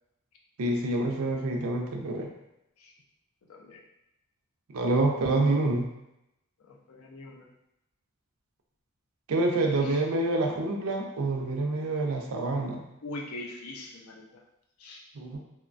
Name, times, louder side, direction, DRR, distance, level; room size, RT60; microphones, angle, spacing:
voice 1, 0.6-2.3 4.7-5.9 9.3-12.8 15.1-15.4, right 2 dB, 75° right, 2 dB, 0.5 m, -27 dB
voice 2, 3.5-3.8 6.7-7.5 9.8-10.0 13.0-14.4 14.8-15.0, left 2 dB, 70° left, -1 dB, 0.5 m, -42 dB
3.0 x 2.1 x 2.4 m, 0.86 s
head